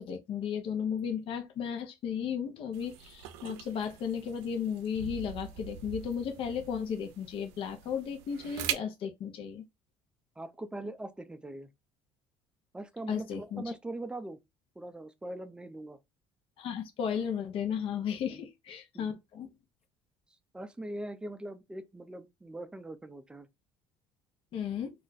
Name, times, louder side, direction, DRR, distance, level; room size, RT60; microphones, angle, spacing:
voice 1, 0.0-9.6 13.1-13.7 16.6-19.5 24.5-24.9, left 7 dB, 55° left, 0.6 m, -34 dB
sound 1, 2.7-8.7, right 10 dB, 85° right, 0.4 m, -42 dB
voice 2, 10.4-11.7 12.7-14.4 14.8-16.0 18.3-18.4 18.9-19.2 20.5-23.5, right 1 dB, 10° right, 0.4 m, -41 dB
2.4 x 2.1 x 3.9 m
supercardioid pair, 95°, 11 cm